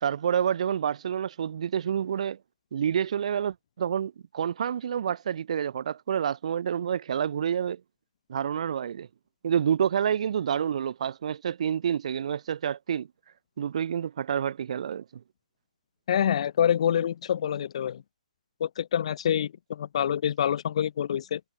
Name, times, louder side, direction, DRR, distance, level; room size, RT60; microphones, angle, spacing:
voice 1, 0.0-2.4 2.7-7.8 8.3-9.1 9.4-13.1 13.6-15.0, right 8 dB, 50° right, 3.1 m, -28 dB
voice 2, 16.1-18.0 18.6-21.4, left 9 dB, 45° left, 1.6 m, -26 dB
hypercardioid pair, 165°, 5 cm